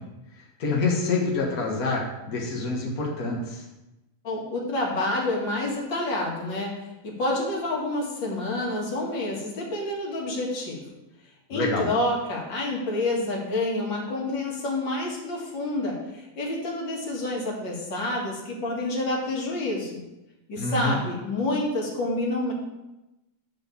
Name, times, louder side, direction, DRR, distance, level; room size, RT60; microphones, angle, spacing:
voice 1, 0.6-3.6 11.5-11.9 20.6-21.0, left 3 dB, 65° left, -3 dB, 0.8 m, -26 dB
voice 2, 4.2-10.8 11.5-20.0 20.5-22.5, left 2 dB, 40° left, -3 dB, 2.0 m, -28 dB
11.5 x 4.1 x 7.1 m, 0.97 s
omnidirectional pair, 4.1 m